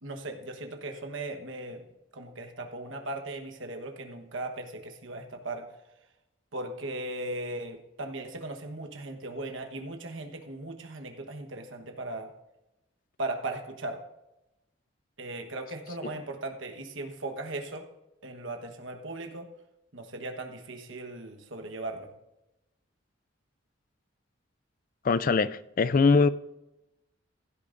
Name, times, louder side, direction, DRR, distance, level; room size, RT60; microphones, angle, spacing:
voice 1, 0.0-1.8 2.1-5.7 6.5-12.3 13.2-14.0 15.2-17.9 18.2-19.5 19.9-22.1, right 2 dB, 70° right, 1.2 m, -38 dB
voice 2, 25.0-26.3, left 4 dB, 45° left, 0.4 m, -22 dB
16.0 x 12.0 x 2.6 m
head